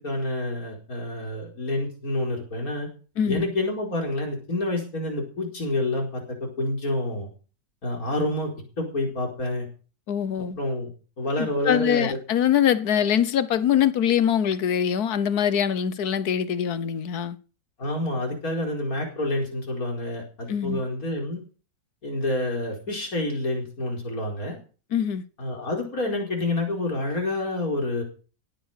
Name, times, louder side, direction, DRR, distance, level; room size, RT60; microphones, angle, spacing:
voice 1, 0.0-2.9 3.3-7.3 7.8-8.5 8.8-9.7 10.6-10.9 11.2-12.1 17.8-21.4 22.0-24.6 25.4-28.0, left 1 dB, 65° left, 5.1 m, -28 dB
voice 2, 10.1-10.6 11.4-17.4 20.5-20.8 24.9-25.2, left 9 dB, 80° left, 1.6 m, -23 dB
17.0 x 9.1 x 6.6 m
omnidirectional pair, 1.6 m